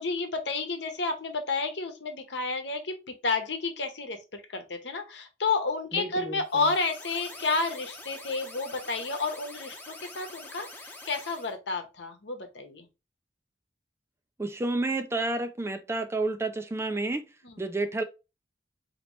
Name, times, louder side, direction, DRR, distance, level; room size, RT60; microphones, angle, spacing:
voice 1, 0.0-12.9 17.4-17.6, left 3 dB, 75° left, 1.0 m, -31 dB
voice 2, 5.9-6.7 14.4-17.3 17.6-18.0, right 2 dB, 15° right, 0.3 m, -30 dB
sound 1, 6.4-11.5, left 2 dB, 10° left, 0.7 m, -45 dB
4.1 x 2.9 x 3.1 m
head